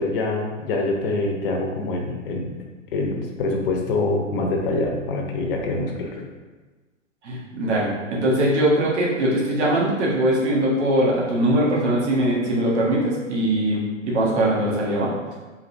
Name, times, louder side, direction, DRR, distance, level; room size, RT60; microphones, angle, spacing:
voice 1, 0.0-2.6 2.9-6.3, left 2 dB, 45° left, 1 dB, 0.6 m, -25 dB
voice 2, 7.2-15.1, right 1 dB, 55° right, -4 dB, 1.2 m, -21 dB
3.8 x 2.7 x 2.6 m, 1.3 s
figure-of-eight pair, 115°, 40 cm